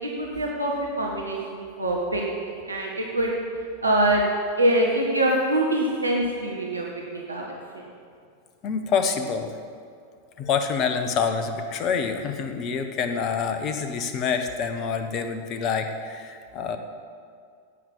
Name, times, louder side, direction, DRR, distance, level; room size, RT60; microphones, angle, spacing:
voice 1, 0.0-3.3 3.8-4.2 4.6-6.8 7.1-7.8, right 1 dB, 80° right, -2 dB, 1.6 m, -24 dB
voice 2, 8.6-9.5 10.4-16.8, left 6 dB, 35° left, 7 dB, 1.1 m, -27 dB
11.0 x 9.2 x 7.5 m, 2.2 s
figure-of-eight pair, 90°, 0 cm